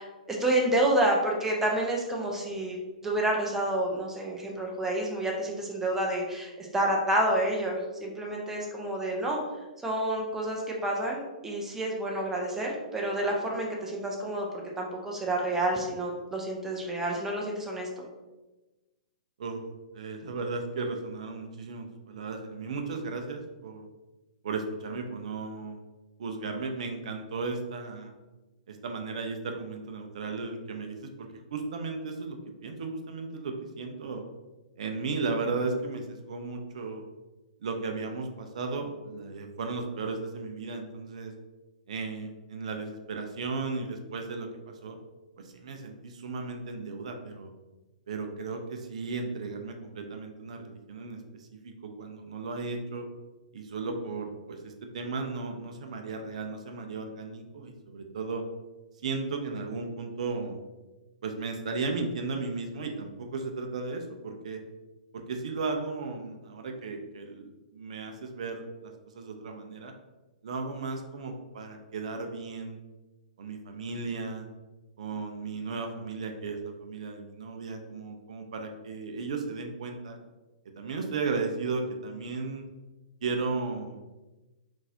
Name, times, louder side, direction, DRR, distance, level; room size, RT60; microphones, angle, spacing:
voice 1, 0.0-2.8 3.0-9.4 9.8-14.5 14.8-18.0, right 1 dB, 10° right, -1 dB, 0.6 m, -29 dB
voice 2, 19.9-23.9 24.4-25.8 26.2-28.1 28.7-34.2 34.8-37.0 37.6-41.3 41.9-45.0 45.4-47.5 48.1-53.1 53.5-58.4 59.0-60.6 61.2-64.6 65.1-69.9 70.4-72.8 73.4-74.5 75.0-80.2 80.7-82.7 83.2-84.0, right 4 dB, 55° right, 4 dB, 0.5 m, -35 dB
3.8 x 2.5 x 2.6 m, 1.1 s
figure-of-eight pair, 115°, 4 cm